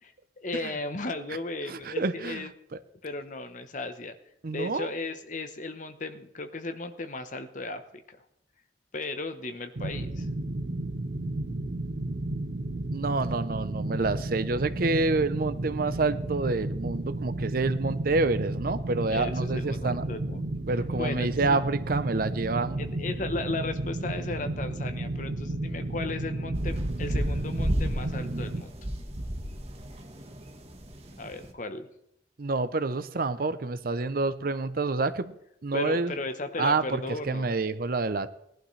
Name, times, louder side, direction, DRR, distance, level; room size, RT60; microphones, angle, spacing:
voice 1, 0.0-2.5 3.0-4.1 4.5-8.2 8.9-10.3 19.1-20.6 21.0-21.6 22.8-28.7 31.2-31.9 35.7-37.5, left 2 dB, 45° left, 9 dB, 0.9 m, -36 dB
voice 2, 1.7-2.8 4.4-4.9 12.9-20.0 20.7-22.8 32.4-35.4 35.6-36.2 36.6-38.3, right 3 dB, 50° right, 13 dB, 0.6 m, -28 dB
sound 1, 9.8-28.6, right 2 dB, 70° right, 0.9 m, -33 dB
sound 2, 26.5-31.5, equal, 35° right, 1.3 m, -32 dB
18.5 x 11.5 x 3.2 m, 0.77 s
head